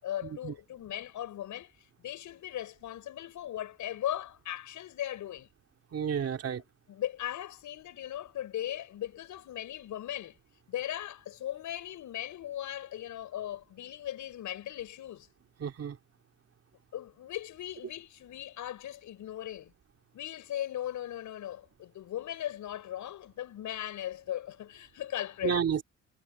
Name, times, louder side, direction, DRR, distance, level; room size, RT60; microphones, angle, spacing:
voice 1, 0.0-1.7 2.0-5.5 6.9-10.4 10.7-15.3 16.9-19.7 20.1-25.6, left 12 dB, 75° left, 7.5 m, -38 dB
voice 2, 5.9-6.6 15.6-16.0 25.4-25.8, right 8 dB, 55° right, 3.2 m, -30 dB
cardioid pair, 90°, 30 cm